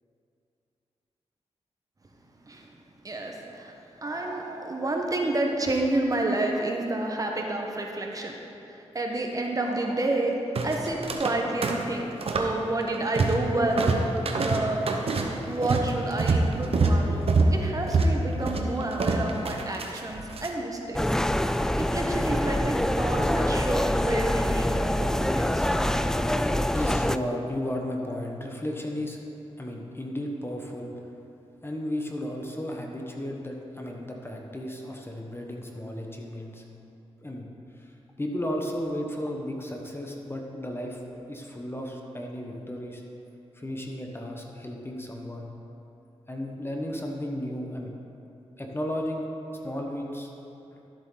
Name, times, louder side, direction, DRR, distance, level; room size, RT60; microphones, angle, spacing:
voice 1, 3.0-3.7 4.0-8.4 8.7-10.4 10.6-12.1 12.3-13.9 14.3-14.8 15.4-21.0 21.8-26.4, right 2 dB, 30° right, 1 dB, 1.2 m, -30 dB
sound 1, 10.5-11.4 11.6-12.5 12.8-13.5 13.8-20.5, right 3 dB, 60° right, 1.0 m, -25 dB
sound 2, 20.9-27.2, left 1 dB, 5° left, 0.3 m, -25 dB
voice 2, 26.7-29.2 29.6-31.1 31.6-36.6 37.2-37.5 37.8-43.0 43.5-45.6 46.3-48.0 48.6-49.3 49.6-50.3 50.7-50.8, left 1 dB, 20° left, 1 dB, 1.2 m, -34 dB
13.0 x 7.9 x 3.9 m, 2.8 s
cardioid pair, 75°, 11 cm